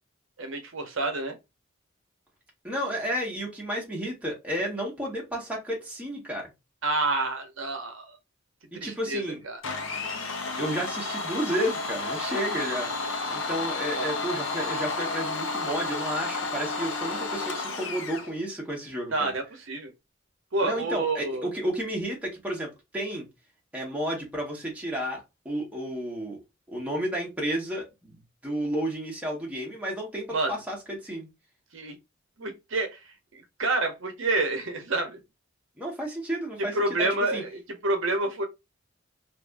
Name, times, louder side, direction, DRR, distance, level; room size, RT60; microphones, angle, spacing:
voice 1, 0.4-1.4 6.8-8.2 8.7-9.6 13.9-14.1 19.1-19.9 20.5-21.5 30.3-30.6 31.7-32.0 32.4-35.2 36.7-38.4, right 2 dB, 70° right, 0.8 m, -28 dB
voice 2, 2.6-6.5 8.7-9.4 10.6-12.9 13.3-19.3 20.6-22.7 22.9-23.3 23.7-26.4 26.7-31.3 35.8-36.7 37.0-37.4, equal, 5° right, 1.1 m, -32 dB
Domestic sounds home sounds, 9.6-18.3, left 3 dB, 70° left, 0.7 m, -31 dB
2.6 x 2.6 x 3.4 m
head